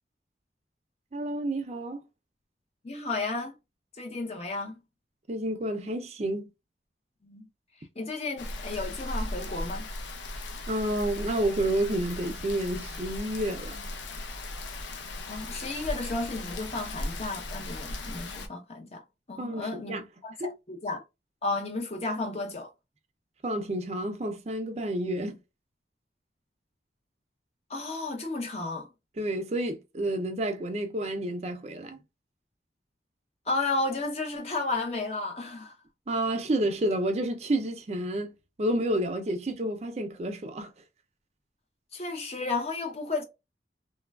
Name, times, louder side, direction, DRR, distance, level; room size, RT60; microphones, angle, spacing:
voice 1, 1.1-2.0 5.3-6.5 10.7-13.8 19.4-20.1 20.4-20.5 23.4-25.4 29.2-32.0 36.1-40.7, right 1 dB, 35° right, 0.4 m, -30 dB
voice 2, 2.8-3.6 4.0-4.8 7.2-7.5 8.0-9.9 15.3-19.0 19.3-21.0 21.4-22.7 27.7-28.9 33.5-35.7 41.9-43.2, left 3 dB, 35° left, 0.6 m, -33 dB
Rain, 8.4-18.5, left 1 dB, 90° left, 0.6 m, -37 dB
3.0 x 2.2 x 2.2 m
head